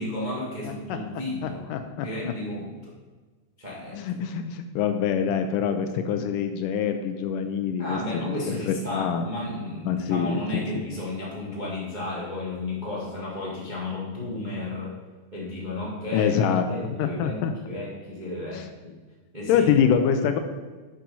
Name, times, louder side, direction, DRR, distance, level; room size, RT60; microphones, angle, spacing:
voice 1, 0.0-2.9 3.6-4.0 7.8-14.9 15.3-16.3 16.7-18.9 19.3-19.7, left 2 dB, 55° right, -6 dB, 0.4 m, -33 dB
voice 2, 1.4-2.3 3.9-8.0 8.2-9.2 9.9-10.6 16.1-16.6 17.0-17.5 18.5-18.7 19.5-20.4, left 7 dB, 85° left, 7 dB, 1.8 m, -25 dB
10.5 x 4.9 x 5.4 m, 1.4 s
omnidirectional pair, 4.4 m